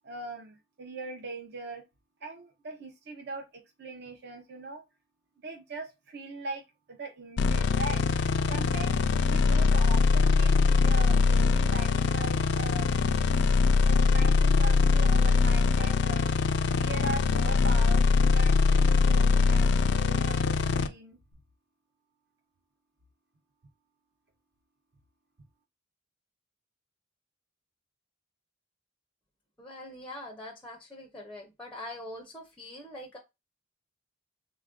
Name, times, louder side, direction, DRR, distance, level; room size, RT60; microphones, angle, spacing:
voice 1, 0.0-1.8 2.2-4.8 5.4-8.0 8.5-12.9 13.9-16.3 16.8-21.2, right 3 dB, 55° right, 0.7 m, -40 dB
sound 1, 7.4-20.9, left 4 dB, 55° left, 0.3 m, -23 dB
voice 2, 29.6-33.2, left 1 dB, 5° left, 0.5 m, -43 dB
3.3 x 2.5 x 3.6 m
head